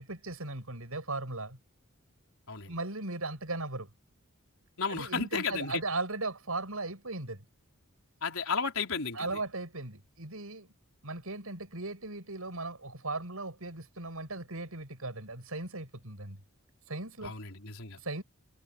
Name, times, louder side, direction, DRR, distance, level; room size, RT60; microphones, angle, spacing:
voice 1, 0.0-1.6 2.7-3.9 4.9-7.4 9.1-10.7 11.0-16.4 16.9-17.3 18.0-18.2, right 2 dB, 75° right, 6.5 m, -37 dB
voice 2, 4.8-5.8 8.2-9.4 17.2-18.0, left 5 dB, 70° left, 4.2 m, -33 dB
head